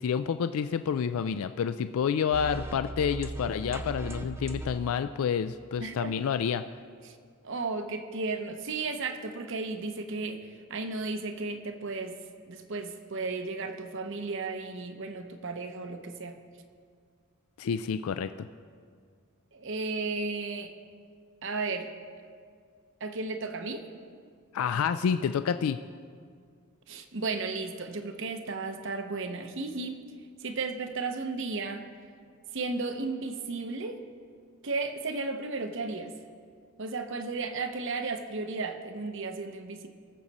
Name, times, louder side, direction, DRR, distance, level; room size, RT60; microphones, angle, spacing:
voice 1, 0.0-6.6 17.6-18.3 24.5-25.8, left 7 dB, 75° left, 11 dB, 0.3 m, -29 dB
sound 1, 2.3-5.0, right 2 dB, 10° right, 0.6 m, -38 dB
voice 2, 5.8-6.2 7.0-7.2 7.4-10.4 10.7-12.1 12.5-16.4 19.5-20.7 21.4-21.9 23.0-23.9 26.9-30.0 30.4-31.9 32.5-34.0 34.6-36.1 36.8-39.9, right 3 dB, 60° right, 7 dB, 0.9 m, -34 dB
19.5 x 7.3 x 4.1 m, 2.1 s
head